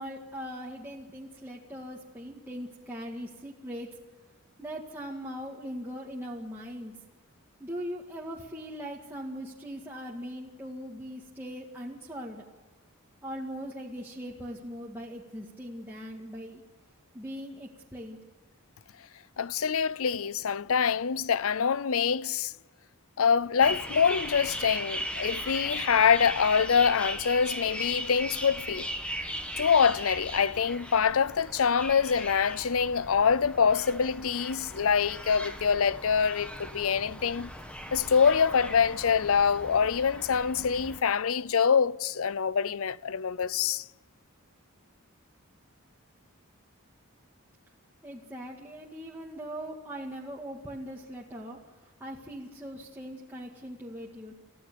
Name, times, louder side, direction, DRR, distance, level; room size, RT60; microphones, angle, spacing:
voice 1, 0.0-3.9 4.6-6.9 7.6-12.4 13.2-16.6 17.1-18.2 48.0-54.3, equal, 10° right, 1.9 m, -40 dB
voice 2, 19.4-22.5 23.2-28.9 29.6-37.5 37.9-43.8, left 6 dB, 70° left, 0.5 m, -25 dB
sound 1, 23.6-41.0, equal, 5° left, 1.7 m, -38 dB
29.5 x 15.0 x 6.9 m
head